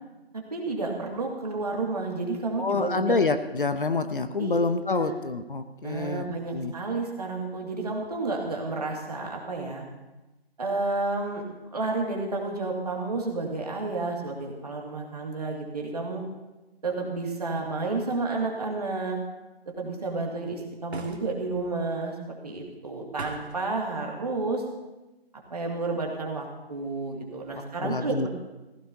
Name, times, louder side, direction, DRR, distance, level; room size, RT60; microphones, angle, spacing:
voice 1, 0.5-3.2 4.4-4.6 4.9-5.1 5.8-9.8 10.6-11.4 11.7-16.2 16.8-19.2 19.8-24.6 25.5-28.3, right 3 dB, 40° right, 0 dB, 2.3 m, -31 dB
voice 2, 2.6-6.3 6.5-6.7 27.5-28.3, left 3 dB, 55° left, 10 dB, 0.8 m, -27 dB
sound 1, 20.9-21.6 23.1-23.7, right 3 dB, 80° right, 1.8 m, -40 dB
17.0 x 15.5 x 2.8 m, 1.1 s
figure-of-eight pair, 175°, 32 cm